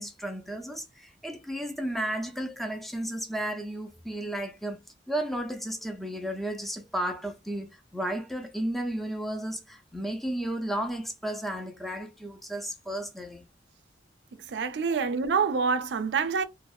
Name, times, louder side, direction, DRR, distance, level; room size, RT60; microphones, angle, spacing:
voice 1, 0.0-4.8 5.1-7.7 7.9-13.4, right 1 dB, ahead, 0.4 m, -33 dB
voice 2, 14.5-16.4, right 5 dB, 75° right, 0.4 m, -26 dB
2.6 x 2.0 x 2.3 m
head